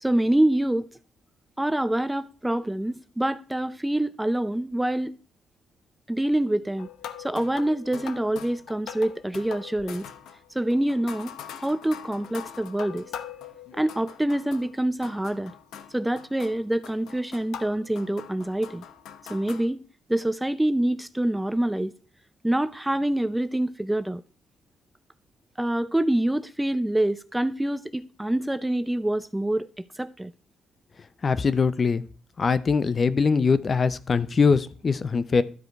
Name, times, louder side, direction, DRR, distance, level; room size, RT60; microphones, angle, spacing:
voice 1, 0.0-0.9 1.6-5.2 6.1-6.9 7.2-10.1 10.5-11.3 11.6-13.1 13.7-15.5 15.9-18.8 19.3-19.8 20.1-21.9 22.4-24.2 25.6-29.7 30.0-30.3, right 1 dB, 10° right, 0.5 m, -26 dB
sound 1, 6.8-14.8 15.0-19.7, left 9 dB, 80° left, 0.8 m, -42 dB
voice 2, 31.2-32.0 32.4-35.4, left 5 dB, 40° left, 0.6 m, -22 dB
12.0 x 5.0 x 4.6 m
cardioid pair, 90°, 0 cm